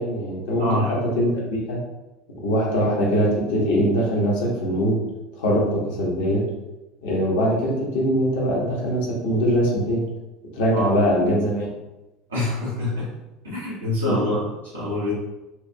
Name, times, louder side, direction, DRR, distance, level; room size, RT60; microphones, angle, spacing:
voice 1, 0.0-1.8 2.3-5.0 5.4-6.4 7.0-10.0 10.5-11.7 14.1-14.2, equal, 65° left, -3 dB, 1.0 m, -22 dB
voice 2, 0.6-0.9 10.7-10.9 12.3-13.1 13.4-14.4 14.7-15.1, left 2 dB, 80° right, -8 dB, 1.4 m, -25 dB
4.4 x 2.5 x 2.2 m, 1.0 s
figure-of-eight pair, 70°, 0 cm